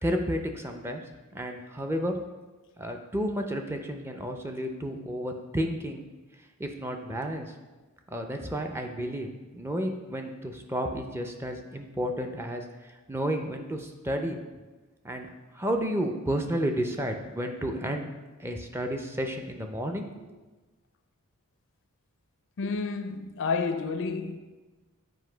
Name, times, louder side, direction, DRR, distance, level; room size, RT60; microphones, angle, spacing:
voice 1, 0.0-1.0 1.3-2.1 2.8-6.0 6.6-7.5 8.1-14.4 15.0-18.1 18.4-20.3, equal, 10° right, 0.4 m, -32 dB
voice 2, 22.6-24.4, left 4 dB, 60° left, 0.4 m, -30 dB
7.9 x 2.7 x 4.9 m
head